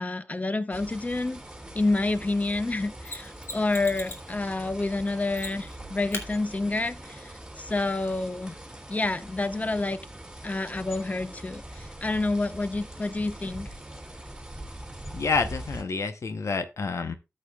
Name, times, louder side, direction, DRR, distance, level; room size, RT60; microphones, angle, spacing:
voice 1, 0.0-1.4 1.7-8.6 8.9-10.0 10.4-13.7, left 2 dB, 30° left, 0.8 m, -28 dB
sound 1, 0.7-15.8, right 1 dB, 10° right, 2.5 m, -42 dB
Mechanisms, 3.0-4.3 5.3-5.8 6.1-6.3 9.0-9.1, left 2 dB, 55° left, 2.4 m, -38 dB
voice 2, 15.1-17.1, left 4 dB, 75° left, 0.8 m, -28 dB
13.0 x 7.3 x 2.3 m
cardioid pair, 60°, 5 cm